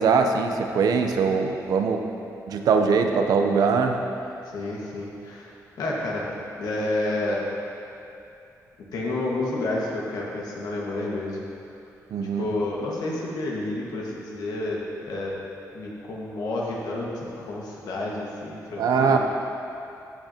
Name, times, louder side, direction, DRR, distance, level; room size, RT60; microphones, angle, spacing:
voice 1, 0.0-2.0 2.5-4.0 12.1-12.5 18.8-19.2, right 5 dB, 75° right, 4 dB, 0.7 m, -22 dB
voice 2, 4.5-5.5 5.8-7.4 8.9-11.4 12.4-15.3 15.7-19.2, left 2 dB, 85° left, -4 dB, 1.6 m, -30 dB
14.0 x 6.3 x 2.9 m, 2.7 s
cardioid pair, 110°, 6 cm